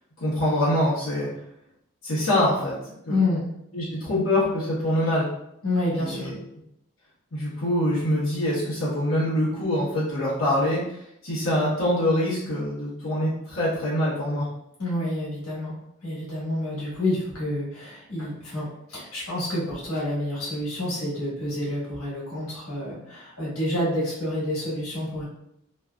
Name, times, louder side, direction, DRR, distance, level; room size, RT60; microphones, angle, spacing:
voice 1, 0.2-1.3 2.0-3.2 3.7-5.3 6.0-6.3 7.3-10.8 11.2-14.5, left 1 dB, 65° left, -10 dB, 1.1 m, -24 dB
voice 2, 3.1-3.5 5.6-6.3 14.8-25.2, left 1 dB, 90° left, -7 dB, 1.4 m, -28 dB
3.2 x 2.4 x 2.3 m, 0.78 s
head